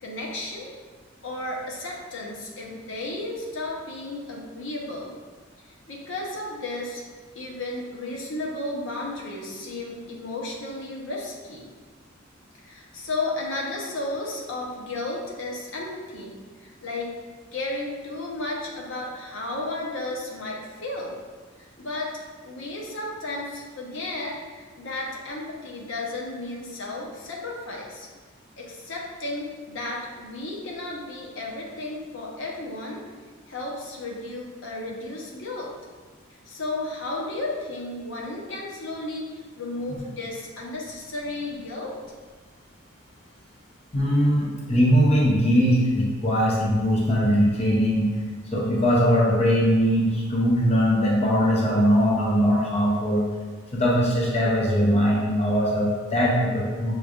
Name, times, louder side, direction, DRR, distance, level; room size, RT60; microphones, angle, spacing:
voice 1, 0.0-0.7 1.2-5.1 5.6-7.0 7.3-11.7 12.6-17.1 17.5-21.2 21.6-28.1 28.6-33.0 33.5-35.7 36.5-42.0, left 2 dB, 70° left, -3 dB, 0.8 m, -33 dB
voice 2, 43.9-48.1 48.5-53.2 53.7-57.0, equal, 35° left, -4 dB, 0.7 m, -21 dB
6.4 x 3.2 x 2.4 m, 1.4 s
head